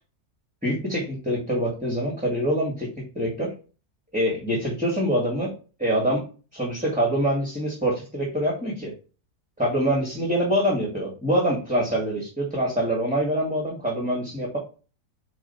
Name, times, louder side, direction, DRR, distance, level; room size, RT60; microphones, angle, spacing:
voice 1, 0.6-3.5 4.1-5.5 5.8-6.2 6.5-8.9 9.6-14.6, equal, 5° right, -3 dB, 2.0 m, -25 dB
5.0 x 4.5 x 5.7 m, 0.34 s
omnidirectional pair, 1.7 m